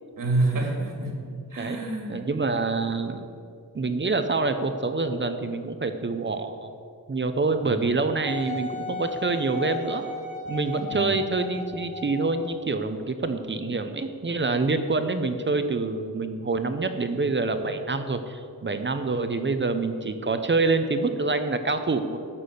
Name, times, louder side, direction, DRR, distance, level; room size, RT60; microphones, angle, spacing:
voice 1, 0.2-1.1 1.5-2.2 7.7-7.9 10.9-11.1, right 2 dB, 65° right, 1 dB, 2.7 m, -27 dB
voice 2, 2.1-3.3 3.7-6.7 7.1-10.0 10.5-22.2, right 3 dB, 30° right, 8 dB, 0.8 m, -26 dB
Wind instrument woodwind instrument, 8.3-12.6 13.2-13.3, left 3 dB, 20° left, 1.6 m, -36 dB
13.0 x 6.2 x 8.4 m, 2.4 s
wide cardioid pair, 135°, 35 cm